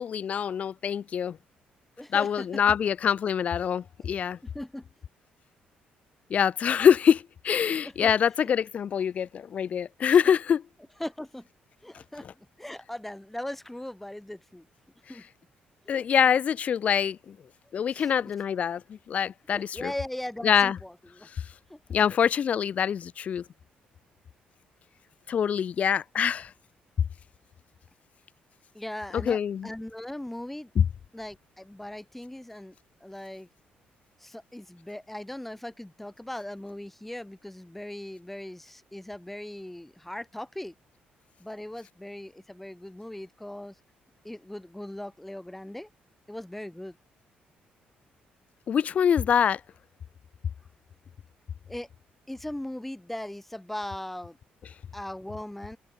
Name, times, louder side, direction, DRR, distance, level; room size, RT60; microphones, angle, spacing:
voice 1, 0.0-1.4 2.1-4.4 6.3-10.6 15.9-17.4 17.7-19.9 20.4-20.8 21.9-23.4 25.3-26.5 29.1-29.7 30.8-30.9 48.7-49.6, left 8 dB, 45° left, 0.4 m, -24 dB
voice 2, 2.0-2.5 4.0-4.1 4.5-4.9 7.8-8.1 11.0-11.5 11.8-12.3 12.6-14.7 15.1-15.2 15.9-16.1 17.9-18.1 19.5-21.3 21.7-22.0 28.7-30.7 31.1-32.8 33.0-33.5 34.2-40.7 41.4-43.8 44.2-45.9 46.3-47.0 51.7-51.9 52.3-54.4 54.9-55.8, left 1 dB, 5° left, 1.9 m, -39 dB
cardioid pair, 135°, 3 cm